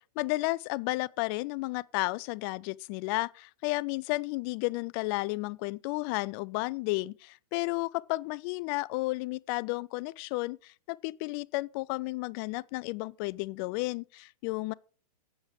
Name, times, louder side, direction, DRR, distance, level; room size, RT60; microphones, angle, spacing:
voice 1, 0.2-14.7, left 23 dB, 40° left, 0.4 m, -32 dB
7.8 x 7.2 x 6.6 m
hypercardioid pair, 125°, 20 cm